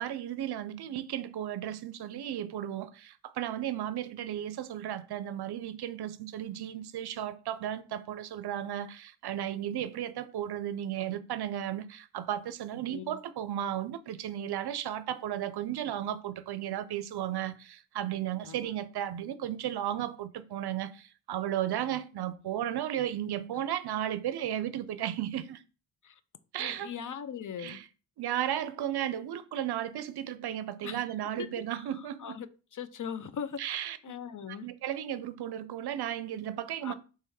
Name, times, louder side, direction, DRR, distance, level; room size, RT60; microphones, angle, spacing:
voice 1, 0.0-25.6 26.5-26.9 27.6-27.9 28.2-32.4 33.6-34.2 34.5-36.9, right 11 dB, 60° right, 0.5 m, -34 dB
voice 2, 26.6-27.8 30.8-31.0 31.4-31.8 32.2-32.5 32.7-33.8 34.0-34.7 36.8-36.9, left 7 dB, 45° left, 0.5 m, -40 dB
3.4 x 3.2 x 4.6 m
cardioid pair, 60°, 45 cm